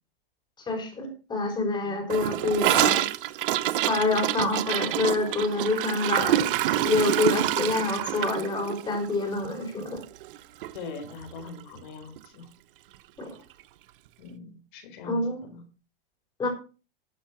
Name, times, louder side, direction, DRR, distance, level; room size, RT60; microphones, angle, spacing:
voice 1, 0.7-3.0 3.9-6.5 6.8-10.0 13.2-13.3 15.0-15.4 16.4-16.5, left 3 dB, 15° left, 4 dB, 4.7 m, -27 dB
Gurgling / Toilet flush, 2.1-10.4 10.6-10.8 11.0-11.5 11.8-11.9 12.2-12.3 13.2-13.3, right 13 dB, 65° right, 0.9 m, -27 dB
voice 2, 10.7-12.5 14.2-15.6, left 4 dB, 55° left, 7 dB, 4.4 m, -42 dB
12.0 x 7.7 x 5.9 m, 0.34 s
supercardioid pair, 145°, 29 cm